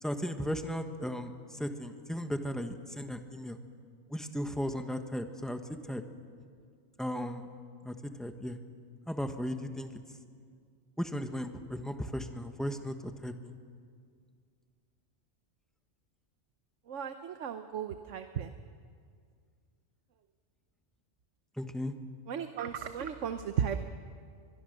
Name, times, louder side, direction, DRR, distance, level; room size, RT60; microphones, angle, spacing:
voice 1, 0.0-3.6 4.1-6.0 7.0-7.5 7.8-8.6 9.1-10.0 11.0-12.9 13.2-13.5 21.6-21.9, equal, ahead, 6 dB, 1.2 m, -36 dB
voice 2, 16.9-18.5 22.3-23.8, right 8 dB, 90° right, 9 dB, 1.2 m, -35 dB
23.0 x 23.0 x 6.7 m, 2.1 s
omnidirectional pair, 1.2 m